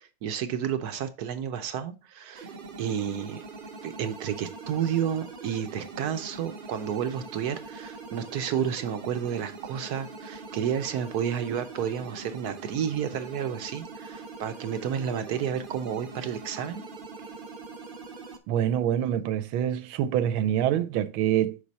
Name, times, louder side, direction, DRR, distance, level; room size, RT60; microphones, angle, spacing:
voice 1, 0.0-2.5 2.8-3.4 3.8-16.8, right 8 dB, 65° right, 1.0 m, -31 dB
sound 1, 2.3-18.4, right 3 dB, 45° right, 0.6 m, -43 dB
voice 2, 18.5-21.6, right 10 dB, 90° right, 1.4 m, -25 dB
5.9 x 4.9 x 4.0 m
omnidirectional pair, 2.2 m